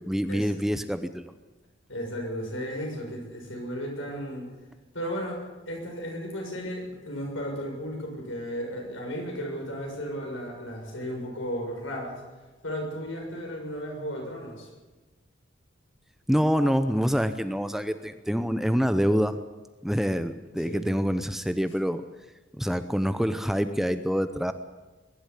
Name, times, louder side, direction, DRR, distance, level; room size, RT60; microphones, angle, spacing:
voice 1, 0.0-1.3 16.3-19.4 19.8-22.0 22.5-24.5, equal, ahead, 10 dB, 0.7 m, -26 dB
voice 2, 1.9-4.5 4.9-12.2 12.6-14.7 20.6-21.0, equal, 80° left, 1 dB, 6.7 m, -34 dB
22.0 x 12.0 x 10.0 m, 1.2 s
head